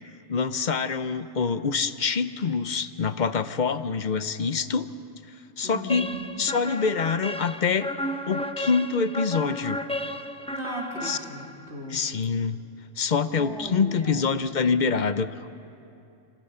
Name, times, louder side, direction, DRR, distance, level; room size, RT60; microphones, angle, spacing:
voice 1, 0.3-4.9 5.3-6.1 6.4-7.9 8.3-9.8 11.0-11.2 11.9-12.6 13.0-15.5, left 5 dB, 45° left, 12 dB, 0.7 m, -25 dB
voice 2, 5.6-6.2 10.5-12.0 13.3-14.3, equal, 60° right, -2 dB, 3.8 m, -37 dB
sound 1, 5.9-11.8, left 1 dB, 5° left, 0.5 m, -33 dB
27.0 x 26.0 x 5.6 m, 2.6 s
omnidirectional pair, 1.3 m